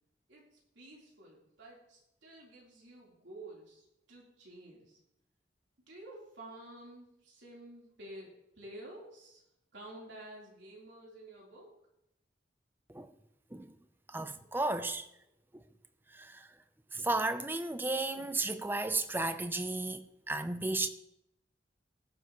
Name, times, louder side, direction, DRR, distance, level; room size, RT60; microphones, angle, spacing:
voice 1, 0.3-5.0 5.9-9.4 9.7-11.7, right 1 dB, 80° right, 3.6 m, -51 dB
voice 2, 14.1-15.1 16.1-16.5 16.9-20.9, right 2 dB, 10° right, 0.6 m, -34 dB
19.5 x 7.3 x 3.0 m
head